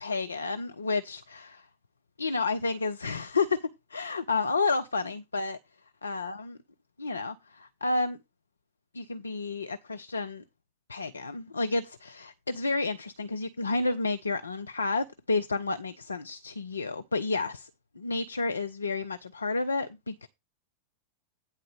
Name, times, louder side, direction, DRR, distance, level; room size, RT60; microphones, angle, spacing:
voice 1, 0.0-1.7 2.2-5.6 6.0-6.5 7.0-8.2 8.9-10.4 10.9-17.7 18.0-20.3, left 3 dB, 75° left, 0.5 m, -31 dB
9.7 x 3.8 x 6.9 m
figure-of-eight pair, 90°, 0 cm